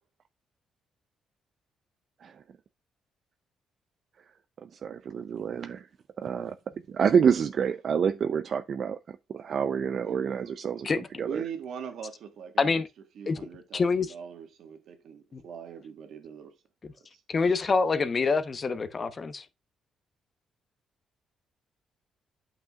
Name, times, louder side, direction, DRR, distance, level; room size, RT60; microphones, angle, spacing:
voice 1, 4.6-5.9 6.2-6.6 6.9-11.5, right 7 dB, 55° right, 0.5 m, -28 dB
voice 2, 10.0-10.5 11.2-12.8 13.1-16.5 17.1-17.2 17.5-17.6, right 7 dB, 70° right, 1.6 m, -41 dB
voice 3, 12.6-12.9 13.3-13.4 13.7-14.1 15.3-15.4 17.3-19.4, left 4 dB, 35° left, 0.9 m, -26 dB
8.6 x 5.9 x 2.4 m
cardioid pair, 90°, 0 cm